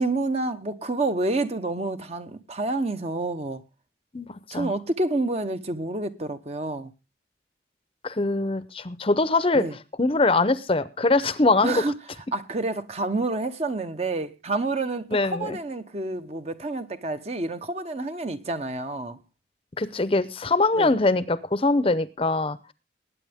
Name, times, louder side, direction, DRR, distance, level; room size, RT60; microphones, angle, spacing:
voice 1, 0.0-3.6 4.5-6.9 9.5-9.7 11.6-11.9 12.3-19.2 20.7-20.9, right 2 dB, 35° right, 0.9 m, -28 dB
voice 2, 8.0-9.6 10.0-11.8 15.1-15.6 19.8-22.7, left 3 dB, 30° left, 0.7 m, -22 dB
20.0 x 9.0 x 3.5 m
head